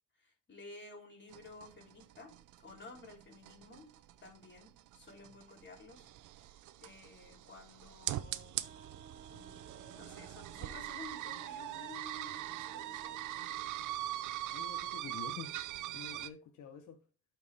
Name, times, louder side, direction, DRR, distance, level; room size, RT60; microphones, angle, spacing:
voice 1, 0.2-2.3 2.6-3.9 4.2-8.7 9.3-13.3, left 2 dB, 35° left, 3.4 m, -53 dB
sound 1, 1.3-16.3, right 14 dB, 85° right, 0.6 m, -42 dB
Wind instrument woodwind instrument, 8.6-14.1, right 5 dB, 30° right, 2.3 m, -57 dB
voice 2, 14.5-15.5 15.9-17.0, left 7 dB, 75° left, 1.1 m, -48 dB
12.0 x 4.6 x 3.4 m
cardioid pair, 90°, 30 cm